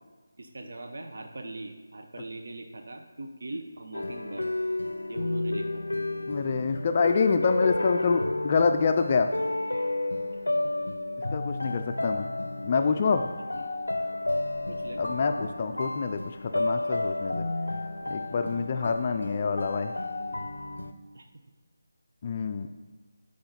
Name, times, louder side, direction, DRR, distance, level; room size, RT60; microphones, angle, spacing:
voice 1, 0.4-4.5 5.1-5.8 10.6-10.9 12.7-12.8 13.6-13.7 14.7-15.0 21.1-21.3, right 2 dB, 60° right, 5 dB, 0.7 m, -41 dB
sound 1, 3.9-20.9, left 2 dB, 90° left, 0.5 m, -31 dB
voice 2, 6.3-9.3 11.3-12.3 12.6-13.3 15.0-17.5 18.1-19.9 22.2-22.7, left 5 dB, 35° left, 7 dB, 0.4 m, -26 dB
8.8 x 5.0 x 4.0 m, 1.3 s
figure-of-eight pair, 160°, 0 cm